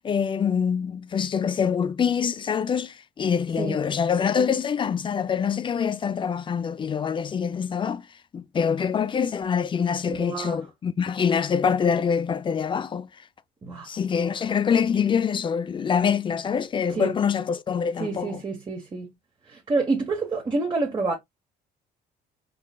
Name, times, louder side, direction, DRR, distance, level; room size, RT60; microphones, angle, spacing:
voice 1, 0.0-8.0 8.3-13.1 13.9-18.4, left 7 dB, 30° left, 0.4 m, -25 dB
voice 2, 10.1-10.6 13.6-13.9 16.9-17.1 18.0-19.1 19.5-21.1, right 3 dB, 25° right, 1.0 m, -28 dB
3.8 x 3.7 x 2.2 m
cardioid pair, 110°, 17 cm